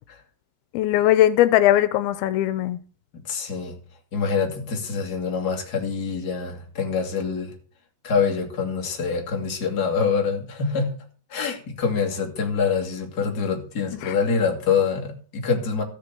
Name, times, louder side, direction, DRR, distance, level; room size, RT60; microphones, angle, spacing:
voice 1, 0.7-2.8 14.0-14.2, left 13 dB, 85° left, 2.7 m, -19 dB
voice 2, 3.2-3.7 4.1-7.5 8.0-10.9 11.3-15.8, left 5 dB, 30° left, 2.6 m, -25 dB
14.5 x 6.8 x 6.9 m
omnidirectional pair, 4.3 m